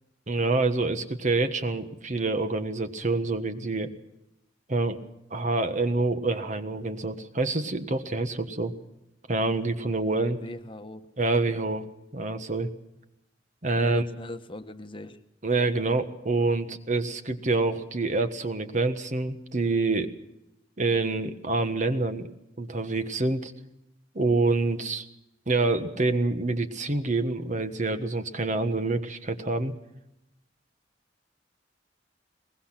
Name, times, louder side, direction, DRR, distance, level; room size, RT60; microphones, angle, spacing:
voice 1, 0.3-3.9 4.7-5.0 5.3-8.7 9.3-10.4 11.2-11.9 12.1-12.7 13.6-14.0 15.4-20.1 20.8-22.3 22.6-23.5 24.1-25.1 25.5-29.7, right 3 dB, 45° right, 9 dB, 1.5 m, -26 dB
voice 2, 10.3-11.1 13.8-15.2, left 1 dB, 30° left, 8 dB, 1.2 m, -40 dB
23.0 x 20.5 x 5.9 m, 0.85 s
head